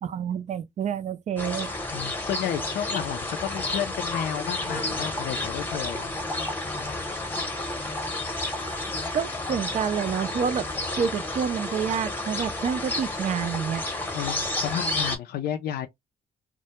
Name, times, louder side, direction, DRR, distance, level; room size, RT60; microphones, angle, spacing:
voice 1, 0.0-1.7 8.6-8.8 9.1-13.8, right 7 dB, 45° right, 0.4 m, -28 dB
sound 1, 1.4-15.2, left 2 dB, 10° left, 0.7 m, -31 dB
voice 2, 1.9-6.1 6.8-7.1 14.1-15.9, left 10 dB, 75° left, 0.4 m, -32 dB
2.1 x 2.0 x 2.8 m
cardioid pair, 100°, 17 cm